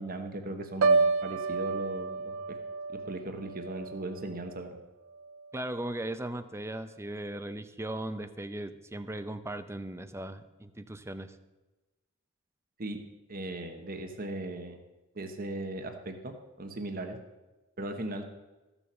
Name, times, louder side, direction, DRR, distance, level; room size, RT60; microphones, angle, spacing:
voice 1, 0.0-2.6 2.9-4.8 12.8-13.0 13.3-14.8 15.1-17.2 17.8-18.2, right 2 dB, 45° right, 5 dB, 1.2 m, -38 dB
Piano, 0.8-4.8 5.2-5.5, right 4 dB, 70° right, 0.6 m, -30 dB
voice 2, 5.5-11.4, right 1 dB, 15° right, 11 dB, 0.7 m, -38 dB
14.5 x 7.1 x 7.4 m, 1.1 s
head